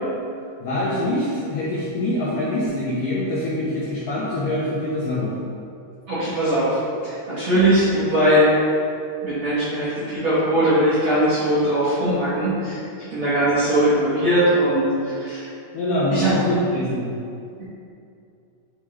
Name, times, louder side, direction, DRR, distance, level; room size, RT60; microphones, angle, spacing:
voice 1, 0.6-5.3 15.7-17.1, left 1 dB, 75° left, -9 dB, 1.9 m, -24 dB
voice 2, 6.1-8.5 9.2-12.8 13.1-15.5 16.1-16.4, right 1 dB, 65° right, -12 dB, 1.8 m, -20 dB
9.8 x 3.7 x 3.2 m, 2.5 s
omnidirectional pair, 5.0 m